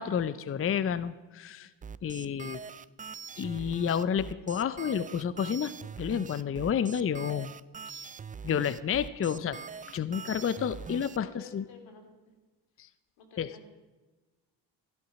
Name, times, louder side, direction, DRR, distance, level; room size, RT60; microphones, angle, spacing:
voice 1, 0.0-1.7 2.0-2.6 3.4-5.7 6.0-7.5 7.9-8.1 8.4-9.6 9.9-11.6 12.8-12.9 13.4-13.5, left 8 dB, 30° left, 15 dB, 0.6 m, -30 dB
sound 1, 1.8-11.2, right 6 dB, 20° right, 0.3 m, -43 dB
voice 2, 11.2-12.1 13.2-13.7, left 4 dB, 80° left, 4 dB, 3.1 m, -51 dB
16.0 x 12.0 x 5.9 m, 1.2 s
cardioid pair, 80°, 45 cm